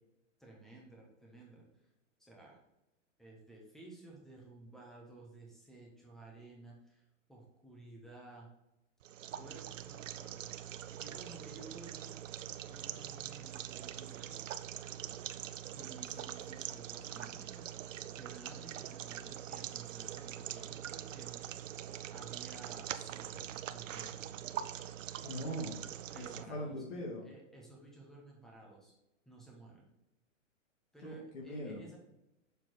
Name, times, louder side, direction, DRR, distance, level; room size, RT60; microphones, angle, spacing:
voice 1, 0.4-1.7 2.2-2.6 3.2-7.0 7.3-8.5 9.4-12.2 12.7-14.4 15.7-17.7 18.2-21.5 22.1-24.7 26.1-26.8 27.2-28.9 29.2-29.9 30.9-32.0, right 2 dB, ahead, -2 dB, 1.3 m, -54 dB
sound 1, 9.0-26.4, right 10 dB, 75° right, 0.6 m, -43 dB
voice 2, 25.2-25.8 26.2-27.2 31.0-31.8, equal, 70° left, -4 dB, 2.2 m, -41 dB
6.6 x 4.4 x 4.4 m, 0.90 s
hypercardioid pair, 145°, 38 cm